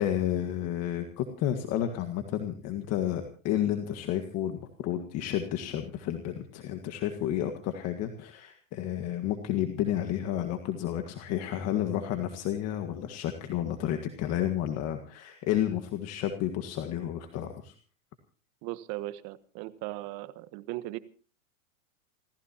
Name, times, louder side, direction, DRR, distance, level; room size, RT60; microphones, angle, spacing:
voice 1, 0.0-17.7, left 11 dB, 40° left, 1.8 m, -31 dB
voice 2, 18.6-21.0, right 17 dB, 45° right, 1.4 m, -38 dB
28.5 x 15.0 x 2.9 m
hypercardioid pair, 115°, 40 cm